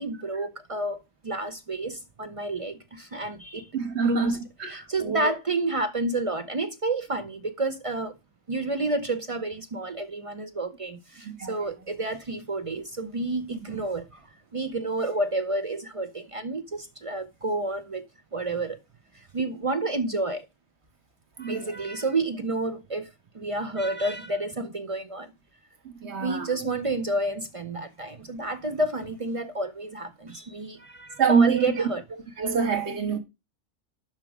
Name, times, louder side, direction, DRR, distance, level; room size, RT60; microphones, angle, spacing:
voice 1, 0.0-3.7 4.0-8.1 8.5-14.2 14.5-18.0 18.3-18.8 19.3-20.5 21.4-23.1 23.3-25.3 26.2-32.0, right 2 dB, 45° right, 0.5 m, -30 dB
voice 2, 3.7-5.3 11.2-11.6 13.5-13.6 21.4-21.7 25.8-26.5 31.2-31.7 32.4-33.2, right 5 dB, 60° right, 1.7 m, -26 dB
7.4 x 6.0 x 4.8 m
omnidirectional pair, 1.3 m